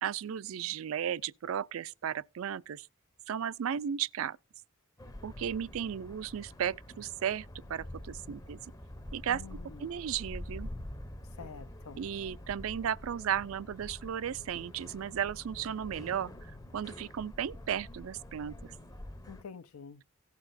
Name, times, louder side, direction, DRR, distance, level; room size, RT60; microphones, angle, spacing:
voice 1, 0.0-2.9 3.3-4.4 5.2-8.6 9.1-9.4 9.8-10.7 12.0-18.7, right 9 dB, 65° right, 0.4 m, -35 dB
sound 1, 5.0-19.4, left 1 dB, 15° left, 0.6 m, -46 dB
voice 2, 9.3-9.9 11.4-12.0 19.3-20.0, left 5 dB, 85° left, 0.6 m, -47 dB
17.5 x 5.9 x 2.5 m
head